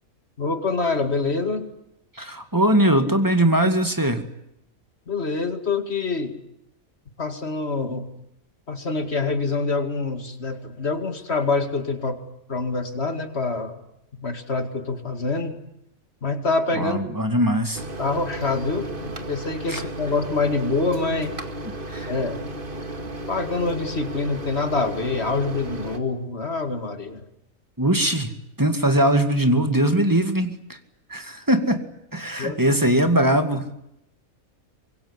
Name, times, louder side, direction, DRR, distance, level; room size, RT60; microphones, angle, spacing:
voice 1, 0.4-1.7 5.1-6.4 7.2-8.1 8.7-13.8 14.2-15.6 16.2-17.1 18.0-21.4 22.1-22.4 23.3-27.2 32.4-32.6, left 3 dB, 50° left, 8 dB, 2.5 m, -26 dB
voice 2, 2.2-4.2 16.8-17.8 19.7-19.8 21.9-22.1 27.8-28.3 28.6-30.5 31.1-31.8 32.1-33.8, right 1 dB, 15° right, 7 dB, 2.2 m, -21 dB
Microwave oven, 17.7-26.0, right 2 dB, 40° right, 2.3 m, -34 dB
25.0 x 21.5 x 9.8 m, 0.81 s
omnidirectional pair, 1.5 m